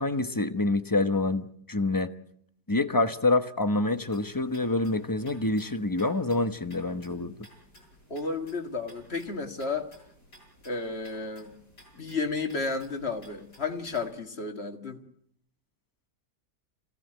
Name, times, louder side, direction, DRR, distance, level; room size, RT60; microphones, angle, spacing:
voice 1, 0.0-2.1 2.7-7.3, left 2 dB, 15° left, 10 dB, 0.8 m, -27 dB
sound 1, 3.9-14.1, equal, 75° left, 8.7 m, -56 dB
voice 2, 8.1-9.9 10.6-11.6 12.0-15.0, left 4 dB, 40° left, 6 dB, 2.2 m, -32 dB
26.0 x 16.5 x 9.1 m, 0.71 s
omnidirectional pair, 1.8 m